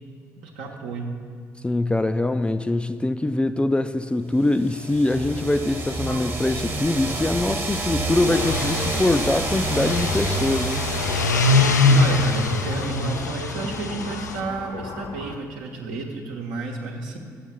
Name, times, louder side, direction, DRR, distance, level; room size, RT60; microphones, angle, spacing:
voice 1, 0.4-1.1 11.9-17.2, right 3 dB, 65° right, 1 dB, 1.0 m, -31 dB
voice 2, 1.6-10.9, left 2 dB, 10° left, 9 dB, 0.3 m, -23 dB
sound 1, 4.6-13.3, right 2 dB, 25° right, 1.0 m, -30 dB
sound 2, 5.1-15.4, left 3 dB, 55° left, 0.7 m, -36 dB
sound 3, 8.1-14.4, left 3 dB, 85° left, 0.3 m, -23 dB
7.3 x 6.4 x 6.9 m, 2.3 s
figure-of-eight pair, 45°, 9 cm